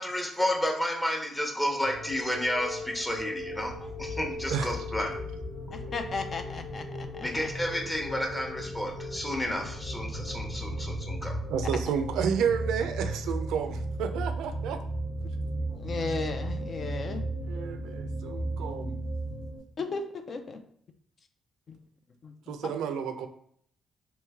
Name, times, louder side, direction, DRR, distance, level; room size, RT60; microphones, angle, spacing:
voice 1, 0.0-5.2 7.2-11.4, left 1 dB, 15° left, 1 dB, 0.8 m, -31 dB
sound 1, 1.8-19.6, right 1 dB, 80° left, 1.4 m, -35 dB
voice 2, 5.7-7.3 15.7-17.2 19.8-20.6 21.7-21.8 22.2-22.3, left 3 dB, 50° left, 6 dB, 0.4 m, -35 dB
voice 3, 11.5-14.8 17.4-19.0 22.5-23.3, right 7 dB, 90° right, 7 dB, 0.4 m, -31 dB
3.1 x 3.0 x 3.5 m, 0.64 s
cardioid pair, 90°, 0 cm